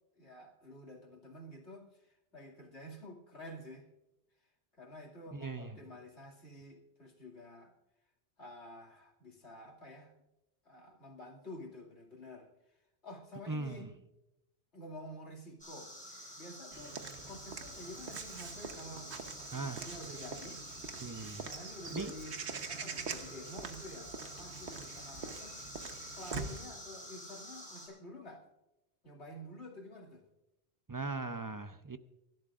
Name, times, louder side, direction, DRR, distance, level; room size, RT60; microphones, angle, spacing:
voice 1, 0.2-3.9 4.8-7.7 8.4-10.1 10.6-12.5 13.0-13.9 14.7-15.9 16.4-19.1 19.4-20.6 21.3-22.4 22.7-28.4 29.0-30.2, left 1 dB, 75° left, -1 dB, 2.7 m, -50 dB
voice 2, 5.3-5.8 13.5-13.9 19.5-19.9 21.0-21.5 21.9-22.1 30.9-32.0, right 3 dB, 25° right, 10 dB, 0.4 m, -39 dB
sound 1, 15.6-27.9, equal, 5° left, 5.9 m, -49 dB
Walk footsteps / Bird vocalization bird call bird song, 16.7-26.7, right 5 dB, 75° right, 1.4 m, -44 dB
27.5 x 12.0 x 2.5 m, 0.95 s
omnidirectional pair, 1.2 m